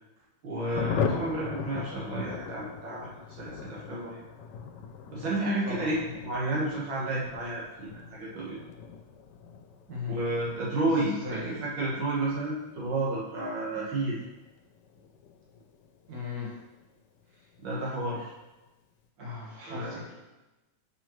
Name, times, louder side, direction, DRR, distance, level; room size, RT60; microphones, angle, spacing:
voice 1, 0.4-4.2 5.1-8.6 10.1-14.2 17.6-18.3 19.7-20.1, right 2 dB, 80° right, -6 dB, 2.2 m, -31 dB
Thunder, 0.7-16.9 17.2-17.3 17.5-17.7 17.9-18.3, left 6 dB, 70° left, 1.1 m, -39 dB
voice 2, 5.7-6.1 9.9-10.2 11.2-11.7 16.1-16.5 19.2-20.1, left 3 dB, 50° right, -5 dB, 2.1 m, -37 dB
6.7 x 5.8 x 3.1 m, 1.1 s
omnidirectional pair, 2.1 m